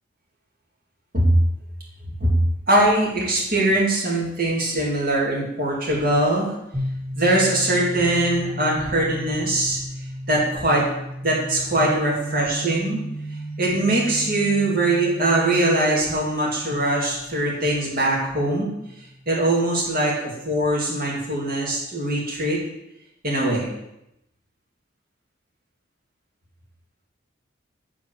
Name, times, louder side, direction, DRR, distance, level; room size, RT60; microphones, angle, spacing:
voice 1, 2.7-6.5 7.1-9.8 10.3-10.8 11.2-13.0 13.6-18.7 19.3-22.6 23.2-23.7, right 1 dB, 45° right, -4 dB, 2.7 m, -22 dB
sound 1, 6.7-20.4, right 1 dB, ahead, 1.9 m, -35 dB
7.6 x 4.6 x 6.4 m, 0.85 s
head